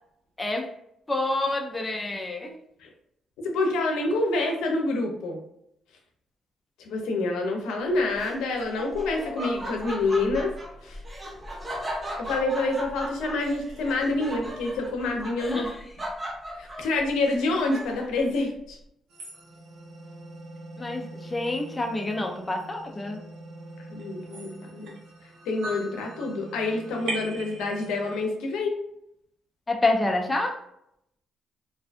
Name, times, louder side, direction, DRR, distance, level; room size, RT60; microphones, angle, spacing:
voice 1, 0.4-0.7 1.1-2.6 15.5-15.8 20.8-23.2 29.7-30.6, left 2 dB, 20° left, 2 dB, 0.4 m, -28 dB
voice 2, 3.4-5.4 6.8-10.5 10.8-11.0 12.2-15.7 16.5-18.8 23.9-25.0 25.5-28.8, left 2 dB, 90° left, 2 dB, 0.6 m, -27 dB
Laughter, 8.2-18.2, equal, 20° right, 0.7 m, -37 dB
sound 1, 19.1-28.3, right 2 dB, 80° right, 0.7 m, -41 dB
2.5 x 2.2 x 2.4 m, 0.76 s
cardioid pair, 90°, 0 cm